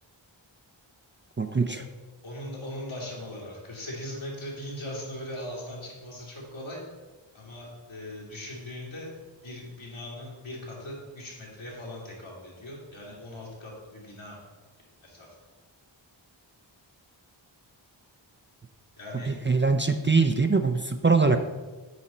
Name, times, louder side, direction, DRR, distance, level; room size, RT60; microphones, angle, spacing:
voice 1, 1.4-1.8 19.3-21.4, right 4 dB, 25° right, 7 dB, 0.4 m, -23 dB
voice 2, 2.2-6.8 7.3-14.4 15.0-15.3 19.0-19.5, left 1 dB, 80° left, -5 dB, 2.6 m, -40 dB
8.3 x 5.1 x 4.3 m, 1.3 s
wide cardioid pair, 60°, 47 cm